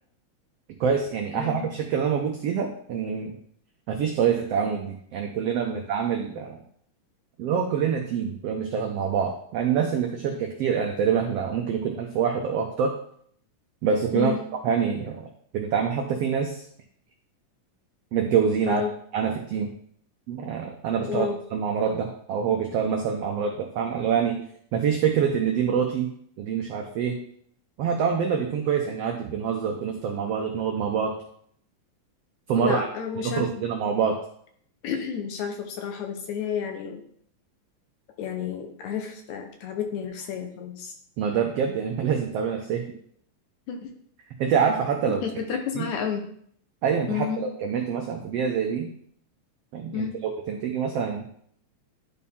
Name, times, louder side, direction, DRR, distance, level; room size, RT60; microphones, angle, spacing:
voice 1, 0.8-3.3 3.9-6.6 7.4-12.9 13.8-14.3 14.6-15.3 15.5-16.6 18.1-18.8 19.1-19.7 20.3-24.4 24.7-26.1 26.4-27.2 27.8-31.1 32.5-32.8 33.2-34.2 41.2-42.8 44.4-45.2 45.7-45.8 46.8-48.9 49.7-50.1 50.5-51.2, right 7 dB, 80° right, 2 dB, 1.4 m, -25 dB
voice 2, 1.3-1.7 5.7-5.8 14.1-14.4 18.6-18.9 21.0-21.4 32.6-33.5 34.8-37.0 38.2-40.9 43.7-43.8 45.2-46.3 47.1-47.4 49.9-50.1, left 7 dB, 70° left, 4 dB, 2.0 m, -31 dB
11.5 x 4.3 x 3.6 m, 0.64 s
omnidirectional pair, 3.8 m